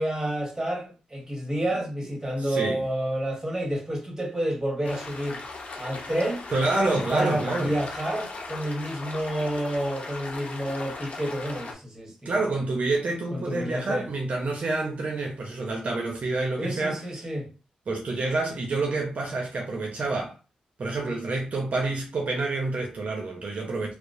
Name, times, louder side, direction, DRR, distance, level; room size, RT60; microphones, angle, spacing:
voice 1, 0.0-5.4 5.8-6.4 6.9-12.6 13.3-14.1 16.6-17.5, right 1 dB, 20° right, 1.4 m, -29 dB
voice 2, 2.4-2.8 6.5-7.8 12.2-17.3 17.9-20.3 20.8-23.9, right 3 dB, 60° right, 0.6 m, -28 dB
sound 1, 4.8-11.7, left 3 dB, 60° left, 0.8 m, -38 dB
2.8 x 2.0 x 2.6 m
cardioid pair, 50°, 3 cm